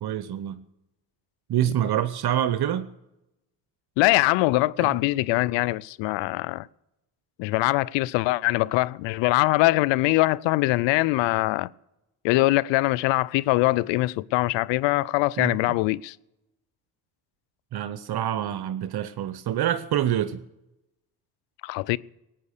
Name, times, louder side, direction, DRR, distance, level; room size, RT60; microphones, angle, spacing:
voice 1, 0.0-0.6 1.5-2.9 4.8-5.0 15.4-15.5 17.7-20.4, right 11 dB, 55° right, 0.9 m, -26 dB
voice 2, 4.0-6.7 7.4-11.7 12.2-16.2 21.6-22.0, left 20 dB, 75° left, 0.6 m, -22 dB
18.5 x 9.2 x 6.6 m
hypercardioid pair, 50°, 45 cm